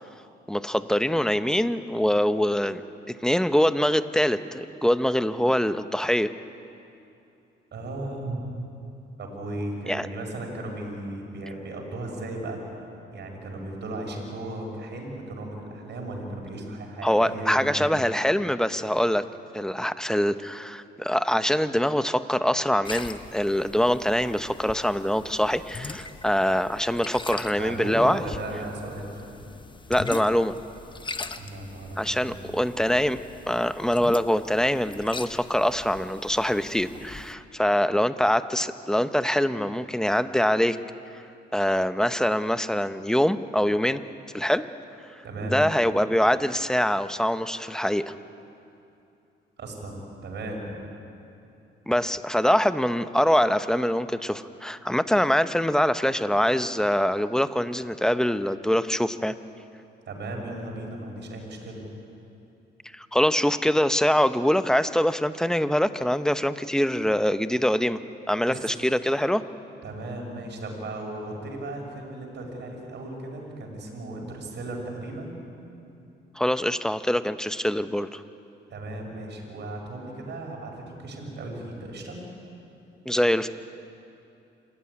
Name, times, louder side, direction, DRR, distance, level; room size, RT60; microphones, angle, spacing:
voice 1, 0.5-6.3 9.9-10.1 17.0-19.2 19.5-28.2 29.9-30.6 32.0-33.2 33.5-40.8 41.5-44.0 44.3-44.7 45.4-48.1 51.9-59.3 62.9-68.0 68.3-69.4 76.4-78.2 83.1-83.5, equal, 5° left, 11 dB, 0.9 m, -24 dB
voice 2, 7.7-8.4 9.2-12.6 13.1-17.9 27.6-29.3 31.3-32.6 45.2-45.7 49.6-50.9 60.1-61.8 68.5-68.7 69.8-75.4 78.7-82.2, right 2 dB, 60° right, 1 dB, 5.9 m, -36 dB
sound 1, 22.8-37.3, left 3 dB, 25° left, 1.1 m, -41 dB
27.0 x 14.5 x 9.8 m, 2.7 s
cardioid pair, 90°, 20 cm